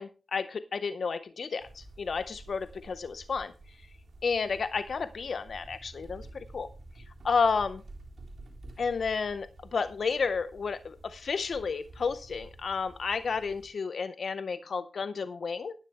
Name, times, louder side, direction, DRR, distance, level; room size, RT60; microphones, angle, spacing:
voice 1, 0.0-3.5 4.2-6.7 7.2-7.8 8.8-15.7, left 5 dB, 75° left, 13 dB, 0.5 m, -31 dB
sound 1, 1.6-13.7, right 2 dB, 80° right, 3.8 m, -50 dB
12.0 x 10.0 x 3.2 m, 0.34 s
cardioid pair, 40°, 0 cm